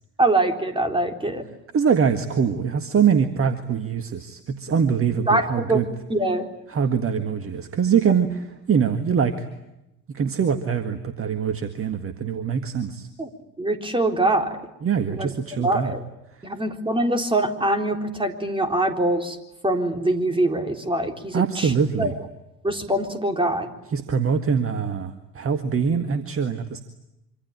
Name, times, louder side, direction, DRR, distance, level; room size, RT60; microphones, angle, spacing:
voice 1, 0.2-1.4 5.3-5.8 6.1-6.5 13.2-13.3 13.6-14.5 15.2-15.3 15.6-16.0 16.4-19.4 19.6-21.7 22.0-22.1 22.6-23.7, right 1 dB, 10° right, 5 dB, 3.9 m, -23 dB
voice 2, 1.7-5.9 6.7-9.5 10.1-13.1 14.8-16.0 21.3-22.1 23.9-26.8, right 6 dB, 30° right, 9 dB, 1.9 m, -23 dB
26.0 x 25.5 x 8.8 m, 0.91 s
figure-of-eight pair, 65°, 47 cm